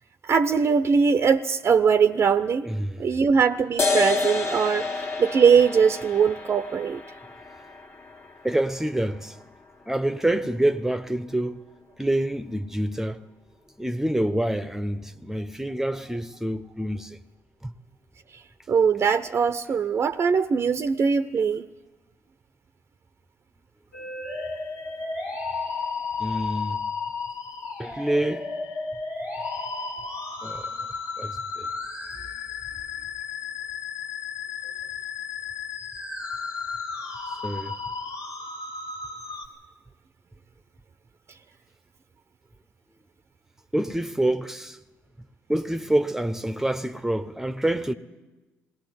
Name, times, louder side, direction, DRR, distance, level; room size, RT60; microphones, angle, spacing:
voice 1, 0.2-2.7 3.0-7.0 18.7-21.7, right 6 dB, 45° right, 0.6 m, -21 dB
voice 2, 2.6-3.1 8.4-9.4 9.9-11.6 12.0-13.2 13.8-17.2 17.6-17.7 26.2-26.8 27.8-28.5 30.4-30.7 31.2-31.7 37.4-37.8 43.7-44.8 45.5-47.9, right 1 dB, 5° right, 0.8 m, -27 dB
sound 1, 3.8-10.8, left 4 dB, 40° left, 1.6 m, -31 dB
sound 2, 23.9-39.5, left 4 dB, 90° left, 2.4 m, -33 dB
19.5 x 17.5 x 7.8 m
supercardioid pair, 65°, 6 cm